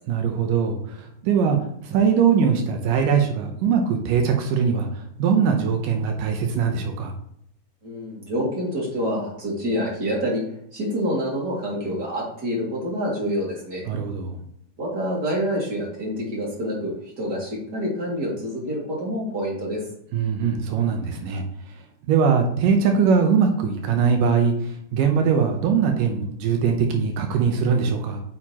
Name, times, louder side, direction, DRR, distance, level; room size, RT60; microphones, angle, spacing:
voice 1, 0.1-1.6 1.8-7.1 13.9-14.4 20.1-21.4 22.1-28.2, right 6 dB, 85° right, 4 dB, 2.6 m, -21 dB
voice 2, 7.8-10.4 10.7-13.8 14.8-19.9, equal, 30° right, -4 dB, 2.8 m, -27 dB
8.6 x 6.6 x 3.0 m, 0.70 s
omnidirectional pair, 3.8 m